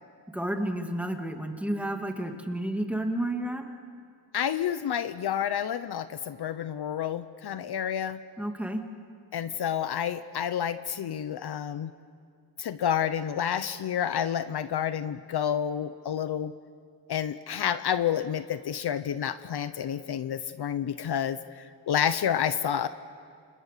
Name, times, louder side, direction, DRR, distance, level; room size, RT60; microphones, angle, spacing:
voice 1, 0.3-3.6 8.4-8.8, right 1 dB, 5° right, 4 dB, 2.3 m, -31 dB
voice 2, 4.3-8.2 9.3-11.9 12.6-16.5 17.1-21.4 21.9-22.9, left 9 dB, 60° left, 12 dB, 0.8 m, -29 dB
29.5 x 26.5 x 6.8 m, 2.2 s
wide cardioid pair, 115°, 43 cm